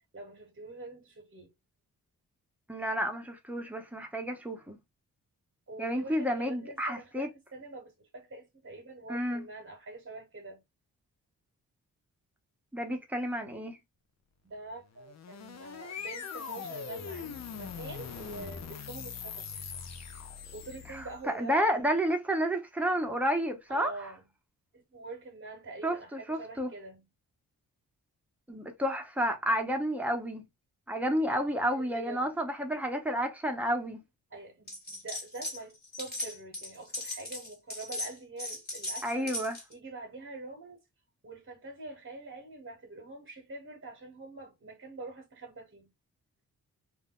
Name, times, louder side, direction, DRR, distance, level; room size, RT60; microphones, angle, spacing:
voice 1, 0.1-1.5 5.7-10.6 14.4-19.5 20.5-21.9 23.7-24.2 24.7-27.1 31.1-32.3 34.3-39.3 39.7-40.8 41.2-45.9, right 2 dB, 40° right, 1.0 m, -45 dB
voice 2, 2.7-4.8 5.8-7.3 9.1-9.4 12.7-13.8 20.9-23.9 25.8-26.7 28.5-30.4 30.9-34.0 39.0-39.6, equal, 5° right, 0.8 m, -31 dB
sound 1, 14.9-21.3, left 6 dB, 50° left, 0.6 m, -42 dB
sound 2, 34.7-35.6 35.8-39.7, left 1 dB, 30° left, 1.3 m, -38 dB
2.3 x 2.1 x 3.6 m
cardioid pair, 60°, 34 cm